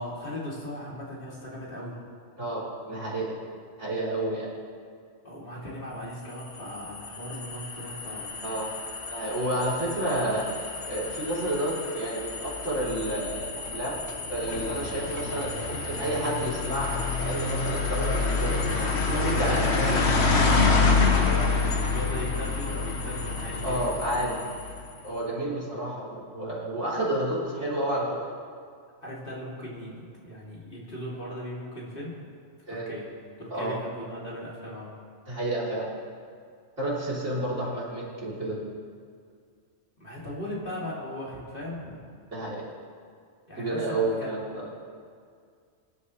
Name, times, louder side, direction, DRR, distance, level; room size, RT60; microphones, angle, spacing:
voice 1, 0.0-2.0 5.2-8.3 21.2-23.8 29.0-32.2 32.7-33.1 33.4-34.9 40.0-42.0 43.5-44.3, equal, 45° left, -5 dB, 3.1 m, -38 dB
voice 2, 2.4-3.3 3.8-4.5 8.4-8.7 9.1-14.0 14.3-20.1 20.8-20.9 23.6-24.4 25.0-28.2 32.7-32.9 33.5-33.8 35.3-35.9 36.8-38.6 42.3-42.6 43.6-44.7, right 1 dB, 75° right, -7 dB, 3.9 m, -30 dB
sound 1, 6.4-24.9, left 4 dB, 60° left, 1.4 m, -28 dB
24.0 x 11.5 x 3.2 m, 2.2 s
omnidirectional pair, 1.3 m